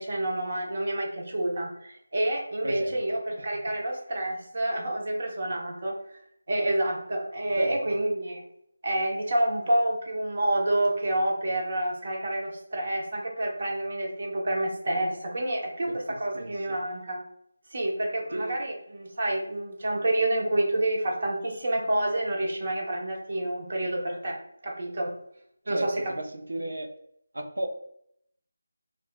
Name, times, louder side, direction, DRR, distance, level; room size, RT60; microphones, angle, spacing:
voice 1, 0.0-6.2 6.5-8.4 8.8-17.2 17.7-24.4 24.6-25.1 25.7-26.1, right 1 dB, 40° right, 0 dB, 0.8 m, -28 dB
voice 2, 2.6-3.8 7.5-8.0 15.9-16.8 18.3-18.6 25.7-26.9 27.3-27.7, right 1 dB, 85° right, 5 dB, 0.8 m, -35 dB
5.2 x 2.4 x 2.2 m, 0.72 s
figure-of-eight pair, 175°, 0 cm